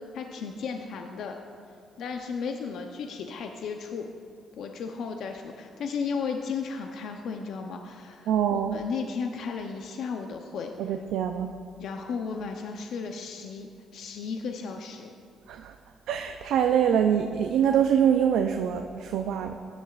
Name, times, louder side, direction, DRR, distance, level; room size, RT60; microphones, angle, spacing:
voice 1, 0.1-1.3 2.0-4.1 4.5-10.9 11.8-15.1, left 5 dB, 75° left, 4 dB, 0.6 m, -34 dB
voice 2, 8.3-8.8 10.8-11.5 15.5-15.8 16.1-19.5, right 8 dB, 85° right, 5 dB, 0.4 m, -24 dB
16.0 x 10.5 x 2.4 m, 2.3 s
cardioid pair, 90°, 0 cm